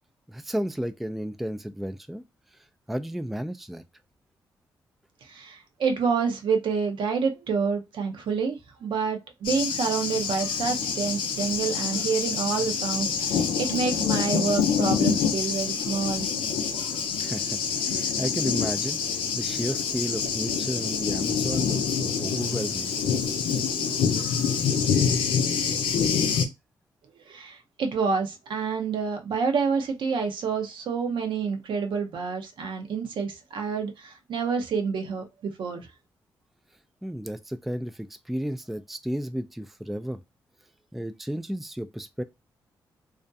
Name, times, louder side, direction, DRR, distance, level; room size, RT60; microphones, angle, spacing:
voice 1, 0.3-2.2 2.9-3.8 17.2-17.6 17.9-22.9 37.0-40.2 40.9-42.2, equal, ahead, 0.3 m, -33 dB
voice 2, 5.2-16.3 27.3-35.9, right 5 dB, 70° right, 0.6 m, -28 dB
Thunder, 9.4-26.4, left 6 dB, 85° left, 0.5 m, -26 dB
2.4 x 2.1 x 2.6 m
supercardioid pair, 50°, 9 cm